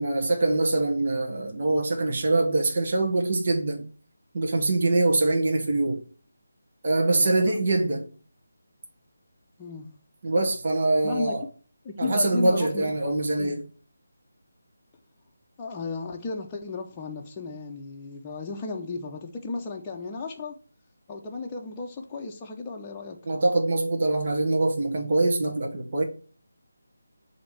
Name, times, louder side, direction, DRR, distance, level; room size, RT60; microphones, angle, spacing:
voice 1, 0.0-3.9 4.3-6.0 6.8-8.1 10.2-11.4 12.0-13.6 23.3-26.0, right 2 dB, 40° right, 1.1 m, -24 dB
voice 2, 7.2-7.6 9.6-9.9 11.0-11.3 11.8-13.6 15.6-20.6 21.1-23.2, left 3 dB, 20° left, 0.7 m, -34 dB
7.2 x 2.9 x 4.7 m
figure-of-eight pair, 155°, 0 cm